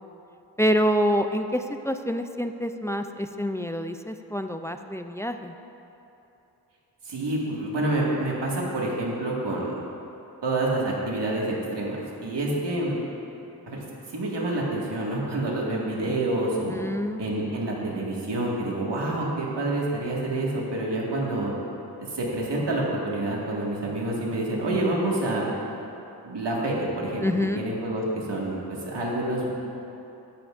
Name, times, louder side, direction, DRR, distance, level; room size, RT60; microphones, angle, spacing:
voice 1, 0.6-5.5 16.7-17.6 27.2-27.6, equal, 10° left, 6 dB, 0.3 m, -27 dB
voice 2, 7.0-9.7 10.4-13.0 13.7-13.8 14.1-16.8 17.2-21.5 22.1-25.5 26.2-27.3 27.5-29.5, right 2 dB, 80° right, -4 dB, 1.9 m, -27 dB
13.0 x 10.5 x 2.5 m, 2.9 s
wide cardioid pair, 85°, 41 cm